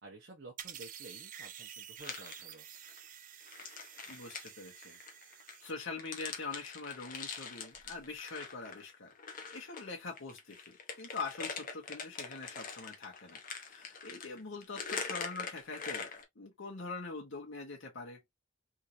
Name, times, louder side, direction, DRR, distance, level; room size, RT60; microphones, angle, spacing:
voice 1, 0.0-2.7, right 2 dB, 55° right, 1.0 m, -52 dB
sound 1, 0.6-5.7, right 9 dB, 40° right, 0.5 m, -50 dB
sound 2, 2.0-3.0 3.4-9.9 10.2-16.2, left 5 dB, 40° left, 1.0 m, -44 dB
voice 2, 4.1-5.0 5.6-16.1 16.3-18.2, left 4 dB, 70° left, 1.4 m, -43 dB
3.7 x 3.1 x 2.7 m
head